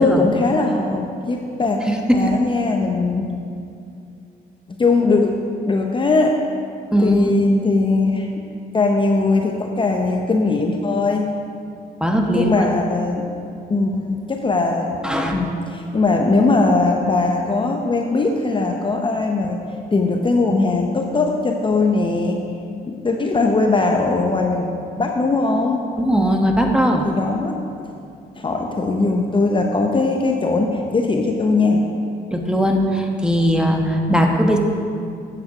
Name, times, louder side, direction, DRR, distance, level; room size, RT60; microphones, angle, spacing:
voice 1, 0.0-1.8 2.1-3.3 4.8-5.4 5.7-6.4 7.0-8.3 8.7-11.3 12.3-13.3 13.7-15.0 15.3-19.6 19.9-22.4 22.9-24.7 25.0-25.8 27.0-27.9 28.3-31.8 34.1-34.4, left 3 dB, 25° left, 2 dB, 0.7 m, -20 dB
voice 2, 1.9-2.2 6.9-7.3 12.0-12.7 15.0-15.3 26.0-27.1 32.3-34.6, equal, 5° right, 2 dB, 1.1 m, -18 dB
8.8 x 7.7 x 4.8 m, 2.5 s
cardioid pair, 90°, 20 cm